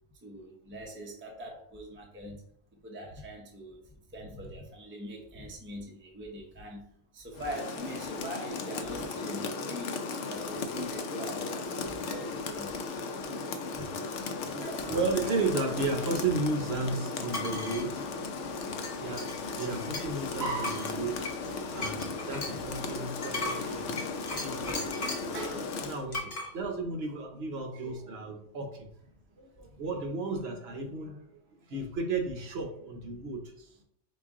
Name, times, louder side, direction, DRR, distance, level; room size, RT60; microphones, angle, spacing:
voice 1, 0.2-2.4 2.8-3.8 4.1-6.9 7.1-12.8 13.7-13.9 14.9-15.0 23.4-23.8 24.6-25.0 25.3-25.7 26.2-26.4 27.8-27.9, equal, 15° right, 0 dB, 0.6 m, -42 dB
Rain, 7.3-26.1, left 4 dB, 75° left, 0.9 m, -36 dB
voice 2, 14.4-18.2 19.0-25.4 25.8-28.9 29.3-31.4 31.7-33.8, right 3 dB, 60° right, 2 dB, 1.0 m, -34 dB
sound 1, 17.3-17.9 18.8-20.3 20.6-25.3 26.1-26.5, left 2 dB, 40° left, 1.0 m, -37 dB
5.1 x 2.5 x 3.6 m, 0.67 s
omnidirectional pair, 1.3 m